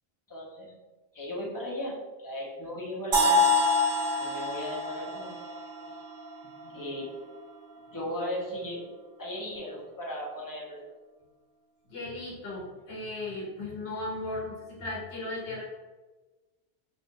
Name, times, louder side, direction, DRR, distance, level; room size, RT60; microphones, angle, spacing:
voice 1, 0.3-0.7 1.1-1.9 2.2-3.5 4.2-5.3 5.8-5.9 6.6-7.1 7.9-8.9 9.2-10.9, left 1 dB, 20° left, -5 dB, 0.7 m, -36 dB
sound 1, 3.1-7.0, left 2 dB, 60° right, 0.8 m, -27 dB
voice 2, 11.9-15.6, left 2 dB, 70° left, -4 dB, 1.1 m, -36 dB
2.6 x 2.5 x 3.6 m, 1.2 s
omnidirectional pair, 1.1 m